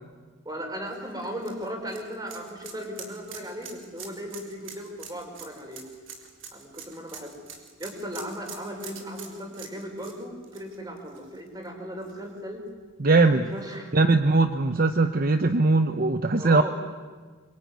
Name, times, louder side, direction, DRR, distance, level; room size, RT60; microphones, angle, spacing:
voice 1, 0.4-5.8 6.5-7.4 7.8-12.6 13.2-14.0 16.4-16.7, equal, 20° right, 2 dB, 4.9 m, -37 dB
sound 1, 0.9-11.6 12.0-12.1 13.6-13.7, right 6 dB, 85° right, 3.8 m, -44 dB
voice 2, 13.0-13.4 13.9-16.6, right 3 dB, 50° right, 9 dB, 0.9 m, -20 dB
25.5 x 23.0 x 9.5 m, 1.4 s
head